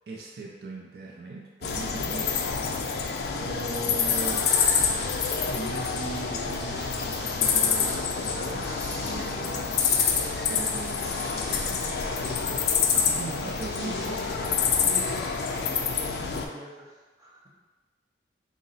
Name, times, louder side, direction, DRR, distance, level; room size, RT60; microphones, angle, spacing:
voice 1, 0.1-2.3 3.4-4.7 5.5-9.7 10.5-12.1 12.9-15.0, right 3 dB, 60° right, -2 dB, 0.4 m, -39 dB
sound 1, 1.6-16.5, left 6 dB, 60° left, 0.3 m, -27 dB
sound 2, 3.7-15.1, equal, 35° left, 1.2 m, -44 dB
voice 2, 15.6-17.5, equal, 20° right, -7 dB, 0.7 m, -47 dB
3.9 x 2.0 x 3.9 m, 1.3 s
head